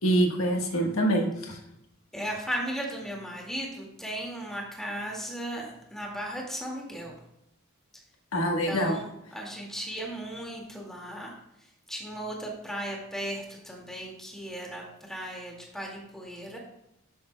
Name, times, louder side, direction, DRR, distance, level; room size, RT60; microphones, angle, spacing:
voice 1, 0.0-1.6 8.3-8.9, right 1 dB, 80° left, 1 dB, 1.3 m, -25 dB
voice 2, 2.1-7.1 8.4-11.4 11.9-16.6, right 1 dB, ahead, -2 dB, 2.0 m, -36 dB
12.5 x 8.2 x 2.2 m, 0.84 s
head